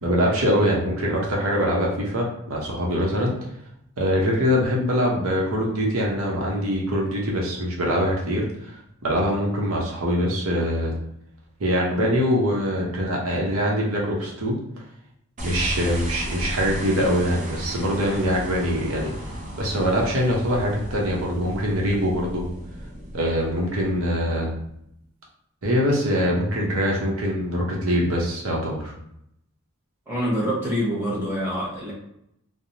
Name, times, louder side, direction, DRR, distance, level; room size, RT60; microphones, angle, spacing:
voice 1, 0.0-3.3 4.0-11.0 11.6-14.6 15.4-19.1 19.6-22.4 23.1-24.5 25.6-28.9, equal, 70° right, -2 dB, 0.8 m, -23 dB
sound 1, 15.4-24.8, equal, 35° right, 0.6 m, -35 dB
voice 2, 30.1-31.9, equal, 10° right, -7 dB, 1.2 m, -25 dB
3.3 x 2.0 x 2.8 m, 0.75 s
head